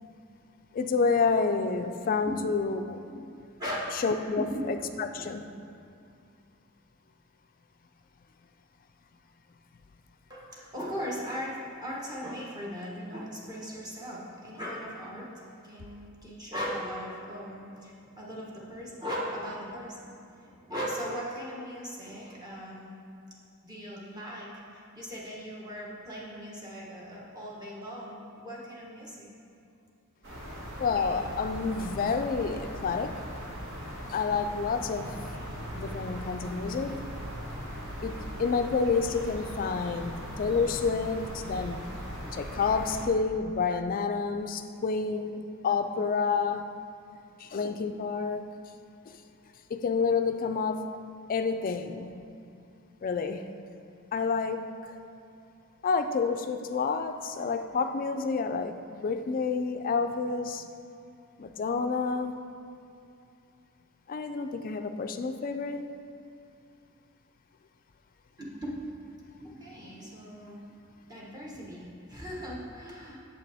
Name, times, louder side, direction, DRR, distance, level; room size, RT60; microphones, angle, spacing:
voice 1, 0.7-3.0 4.0-4.5 5.0-5.4 30.8-33.2 34.1-35.3 35.7-37.0 38.0-41.9 42.3-46.7 47.4-48.5 49.1-49.2 49.7-50.9 51.3-52.1 53.0-53.5 54.1-55.0 55.8-60.7 61.4-62.3 64.1-65.9, left 5 dB, 40° left, 7 dB, 0.4 m, -29 dB
voice 2, 3.6-4.0 4.4-4.7 5.1-5.3 10.3-15.3 15.6-22.9 23.6-29.3 68.4-68.8 69.4-73.2, equal, 20° right, -5 dB, 1.2 m, -38 dB
sound 1, 30.2-43.0, equal, 60° right, 1.6 m, -39 dB
8.2 x 6.8 x 3.5 m, 2.5 s
head